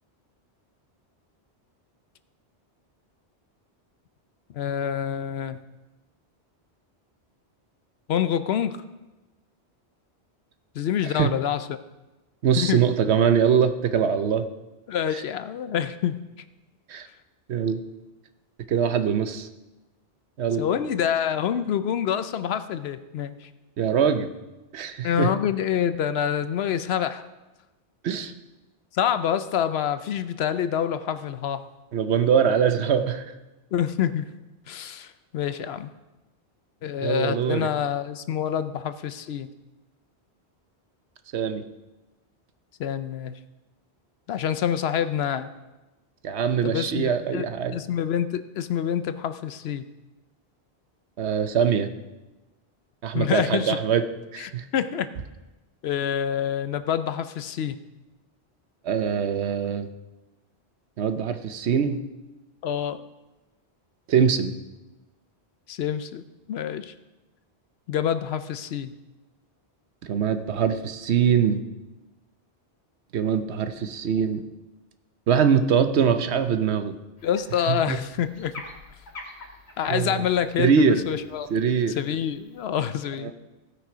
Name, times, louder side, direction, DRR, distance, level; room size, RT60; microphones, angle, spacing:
voice 1, 4.5-5.6 8.1-8.8 10.7-11.8 12.6-12.8 14.9-16.1 20.6-23.5 25.0-27.2 28.9-31.6 33.7-34.2 34.7-35.9 36.8-39.5 42.8-43.4 44.3-45.5 46.6-47.5 47.7-49.9 53.1-53.8 54.4-55.1 55.8-57.8 62.6-63.0 65.7-66.2 66.5-66.9 67.9-68.9 77.2-78.5 79.8-81.5 82.0-83.3, left 9 dB, 75° left, 12 dB, 0.8 m, -27 dB
voice 2, 12.4-14.4 16.9-17.1 17.5-17.8 18.7-19.5 20.4-20.7 23.8-24.3 24.7-25.3 28.0-28.3 31.9-33.3 37.0-37.7 41.3-41.6 46.2-47.8 51.2-51.9 53.0-54.0 54.3-54.6 58.8-59.9 61.0-62.0 64.1-64.5 70.0-71.6 73.1-74.4 75.3-76.9 77.7-78.0 79.9-80.2 80.6-81.0 81.5-82.0 83.2-83.3, right 7 dB, 80° right, 9 dB, 1.0 m, -23 dB
sound 1, 77.2-82.7, left 2 dB, 90° left, 2.2 m, -47 dB
16.0 x 6.1 x 5.0 m, 1.1 s
omnidirectional pair, 1.1 m